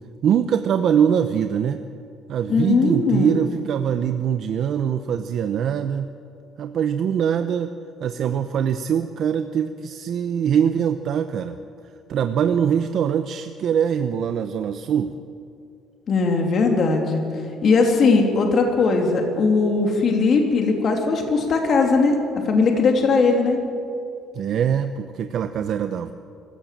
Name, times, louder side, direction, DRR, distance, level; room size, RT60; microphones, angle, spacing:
voice 1, 0.2-1.8 2.3-6.1 6.6-7.7 8.0-11.6 12.1-15.1 24.3-26.1, right 8 dB, 55° right, 9 dB, 0.8 m, -23 dB
voice 2, 2.5-3.4 16.1-17.2 17.6-23.6, left 4 dB, 45° left, 2 dB, 2.9 m, -19 dB
24.5 x 15.0 x 7.5 m, 2.4 s
cardioid pair, 130°, 0 cm